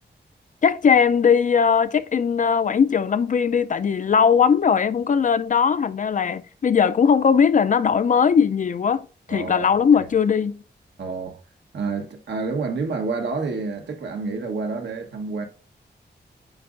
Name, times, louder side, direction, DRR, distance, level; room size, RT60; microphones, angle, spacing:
voice 1, 0.6-10.6, left 6 dB, 45° left, 0.4 m, -19 dB
voice 2, 9.3-9.7 9.9-10.0 11.0-11.4 11.7-15.5, right 4 dB, 80° right, 1.2 m, -28 dB
8.7 x 5.2 x 2.4 m
wide cardioid pair, 95°, 18 cm